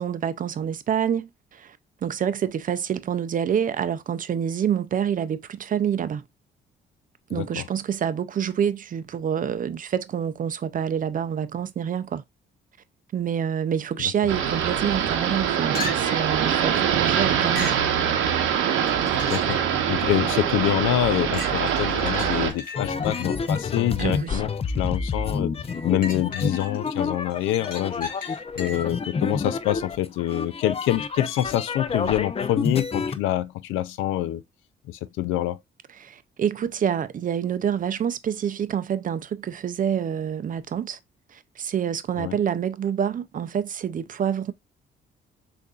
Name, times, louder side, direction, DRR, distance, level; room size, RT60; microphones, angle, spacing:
voice 1, 0.0-6.2 7.3-12.2 13.1-17.7 24.0-24.4 36.0-41.0 41.3-44.5, right 8 dB, 45° right, 0.5 m, -27 dB
voice 2, 7.3-7.7 14.0-14.1 19.3-25.5 25.8-34.4 34.9-35.6 42.2-42.4, left 13 dB, 90° left, 0.4 m, -26 dB
sound 1, 14.3-22.5, right 8 dB, 90° right, 0.8 m, -24 dB
sound 2, 15.7-16.3 17.5-17.9 18.9-19.6 20.2-20.3 21.3-24.3 25.7-26.9 27.3-29.0 32.8-32.9, left 3 dB, 45° left, 2.2 m, -37 dB
sound 3, 22.7-33.2, left 5 dB, 30° left, 0.5 m, -29 dB
6.5 x 2.6 x 2.4 m
cardioid pair, 90°, 20 cm